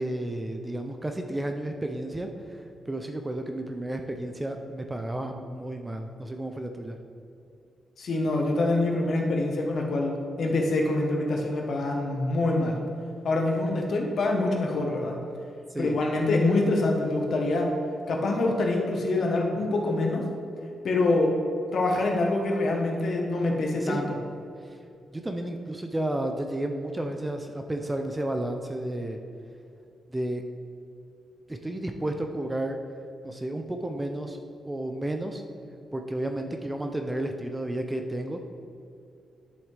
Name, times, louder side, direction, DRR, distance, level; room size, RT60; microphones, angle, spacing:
voice 1, 0.0-7.0 15.7-15.9 23.8-24.0 25.1-29.2 30.1-30.4 31.5-32.8 33.2-34.4 34.6-35.4 35.9-38.5, right 1 dB, 10° right, 5 dB, 0.4 m, -32 dB
voice 2, 8.0-12.8 13.2-15.2 15.8-17.7 18.1-20.2 20.8-21.4 21.7-24.0, left 2 dB, 50° left, 1 dB, 1.2 m, -25 dB
11.0 x 7.1 x 3.3 m, 2.6 s
wide cardioid pair, 165°, 0 cm